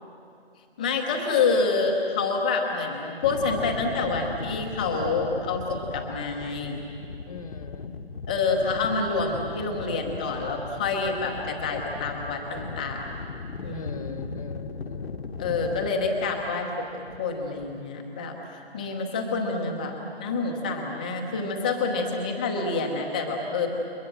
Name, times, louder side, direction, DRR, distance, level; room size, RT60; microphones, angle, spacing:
voice 1, 0.8-6.8 8.3-13.1 13.6-14.3 15.4-16.9 17.2-23.7, left 4 dB, 10° left, 1 dB, 0.9 m, -27 dB
sound 1, 3.2-17.8, left 4 dB, 70° left, 1.3 m, -38 dB
voice 2, 7.3-7.9 13.7-15.9, left 5 dB, 35° left, 10 dB, 1.2 m, -41 dB
29.5 x 23.5 x 7.6 m, 2.6 s
hypercardioid pair, 175°, 31 cm